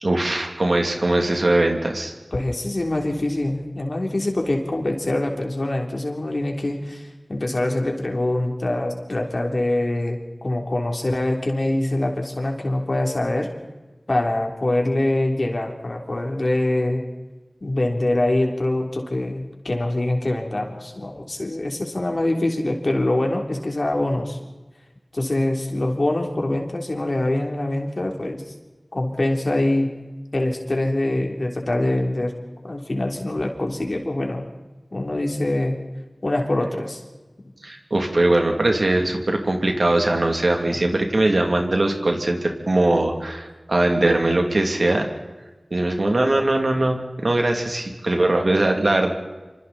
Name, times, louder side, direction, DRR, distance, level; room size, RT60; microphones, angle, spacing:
voice 1, 0.0-2.1 37.6-45.0 45.7-49.1, right 2 dB, 70° right, 3 dB, 2.9 m, -21 dB
voice 2, 2.3-13.5 14.1-17.0 17.6-24.4 25.1-28.4 28.9-29.9 30.3-32.3 32.6-34.5 34.9-35.8 36.2-37.0 40.7-40.8, left 1 dB, 60° left, 2 dB, 3.5 m, -24 dB
26.0 x 25.5 x 4.3 m, 1.2 s
wide cardioid pair, 45°, 0 cm